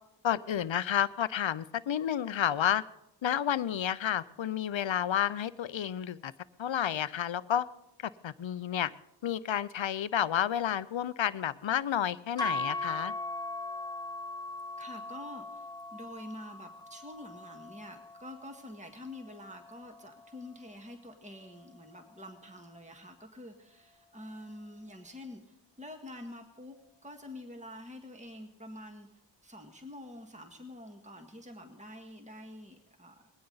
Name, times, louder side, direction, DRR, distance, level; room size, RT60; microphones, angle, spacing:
voice 1, 0.2-2.8 3.2-6.3 6.6-7.7 8.0-8.9 9.2-13.1, left 10 dB, 85° left, 17 dB, 0.6 m, -30 dB
sound 1, 12.4-20.6, left 2 dB, 10° left, 0.6 m, -40 dB
voice 2, 14.8-26.8 27.0-29.1 29.4-33.3, left 1 dB, 15° right, 3 dB, 1.8 m, -47 dB
20.0 x 16.5 x 4.0 m, 0.88 s
wide cardioid pair, 45°, 44 cm